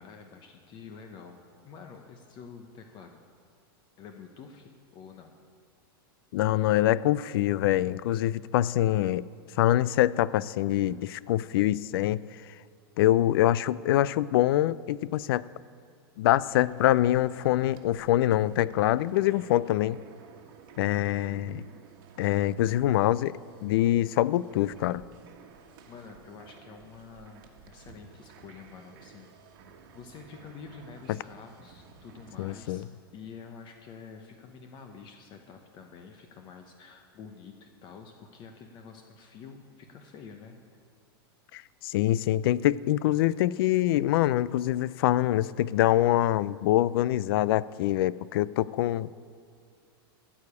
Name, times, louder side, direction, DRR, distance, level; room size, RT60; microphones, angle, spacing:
voice 1, 0.0-3.2 4.0-5.3 25.9-29.3 29.9-32.9 33.1-40.8, left 5 dB, 35° left, 4 dB, 0.9 m, -48 dB
voice 2, 6.3-9.3 9.6-12.2 13.0-15.4 16.2-20.0 20.8-21.6 22.2-23.3 23.6-25.0 31.1-31.2 32.4-32.8 41.5-49.1, left 14 dB, 65° left, 20 dB, 0.4 m, -25 dB
sound 1, 16.5-32.7, right 6 dB, 60° right, 1.3 m, -54 dB
14.0 x 4.9 x 8.3 m, 2.4 s
supercardioid pair, 130°, 13 cm